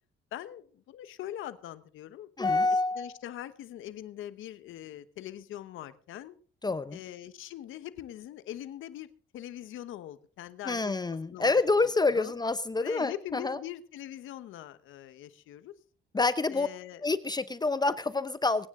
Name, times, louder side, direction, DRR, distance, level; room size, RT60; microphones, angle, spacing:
voice 1, 0.3-6.3 6.9-9.1 9.3-11.0 11.3-11.5 12.1-12.3 12.8-15.7 16.5-17.0, left 12 dB, 85° left, 13 dB, 1.2 m, -42 dB
voice 2, 2.4-3.1 6.6-7.0 10.7-13.6 16.1-16.7 17.0-18.7, left 3 dB, 20° left, 13 dB, 0.8 m, -27 dB
24.0 x 9.8 x 3.8 m, 0.43 s
cardioid pair, 90°, 20 cm